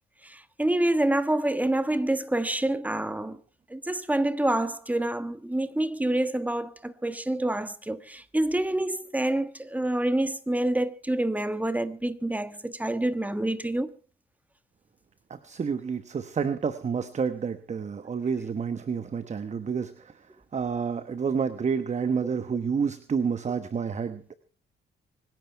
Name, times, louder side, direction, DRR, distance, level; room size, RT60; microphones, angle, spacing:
voice 1, 0.2-3.4 3.7-13.9, right 1 dB, 10° right, 1.3 m, -27 dB
voice 2, 15.3-19.9 20.5-24.3, right 6 dB, 35° right, 1.1 m, -29 dB
25.0 x 10.5 x 4.6 m
cardioid pair, 90°, 20 cm